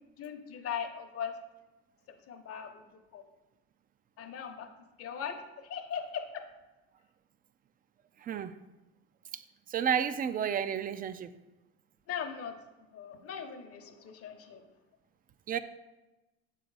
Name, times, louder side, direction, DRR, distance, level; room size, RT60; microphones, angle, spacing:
voice 1, 0.2-1.3 2.3-2.8 3.1-3.2 4.2-4.7 5.0-6.4 12.1-12.5 12.8-14.6, left 7 dB, 45° left, 6 dB, 0.9 m, -39 dB
voice 2, 8.2-8.5 9.7-11.3 15.5-15.6, right 8 dB, 30° right, 13 dB, 0.4 m, -31 dB
7.0 x 3.9 x 4.7 m, 1.1 s
supercardioid pair, 85°, 33 cm